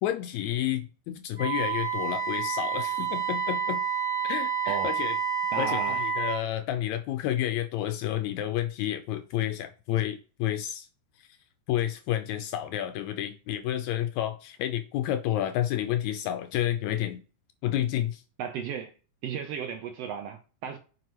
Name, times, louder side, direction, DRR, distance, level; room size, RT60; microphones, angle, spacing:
voice 1, 0.0-3.8 4.2-5.2 5.6-10.9 11.7-17.2 17.6-18.2, left 12 dB, 80° left, 1.8 m, -30 dB
Wind instrument woodwind instrument, 1.4-6.4, right 6 dB, 10° right, 0.7 m, -29 dB
voice 2, 4.7-5.0 5.5-6.0 18.4-18.9 19.2-20.8, right 7 dB, 80° right, 1.4 m, -34 dB
7.6 x 5.2 x 3.0 m
omnidirectional pair, 3.4 m